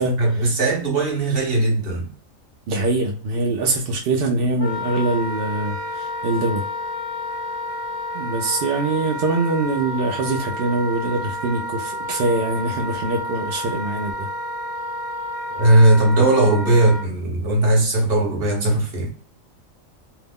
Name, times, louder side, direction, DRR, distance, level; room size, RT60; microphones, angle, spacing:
voice 1, 0.2-2.1 15.5-19.1, right 1 dB, 45° right, 1.1 m, -18 dB
voice 2, 2.7-6.6 8.1-14.3, right 2 dB, 65° right, 0.5 m, -23 dB
Wind instrument woodwind instrument, 4.6-17.1, left 1 dB, 75° left, 0.3 m, -30 dB
2.6 x 2.0 x 3.5 m
omnidirectional pair, 1.4 m